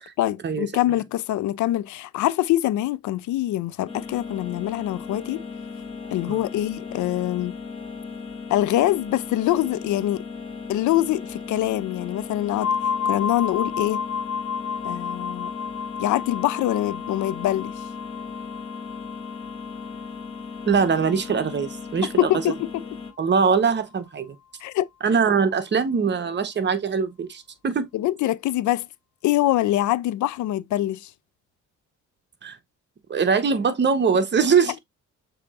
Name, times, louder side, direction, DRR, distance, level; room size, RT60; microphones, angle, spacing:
voice 1, 0.2-5.4 6.1-7.6 8.5-10.2 10.7-12.7 13.0-14.0 14.8-15.5 16.0-17.7 22.2-22.8 24.6-24.9 27.9-28.9 29.2-31.1, left 14 dB, 75° left, 0.5 m, -24 dB
sound 1, 3.9-23.1, left 5 dB, 20° left, 1.4 m, -37 dB
sound 2, 12.6-22.2, left 7 dB, 55° left, 1.5 m, -32 dB
voice 2, 20.7-22.3 23.2-24.3 25.0-27.9 32.4-32.6 33.1-34.8, right 6 dB, 35° right, 0.9 m, -22 dB
6.8 x 2.9 x 2.4 m
cardioid pair, 90°, 30 cm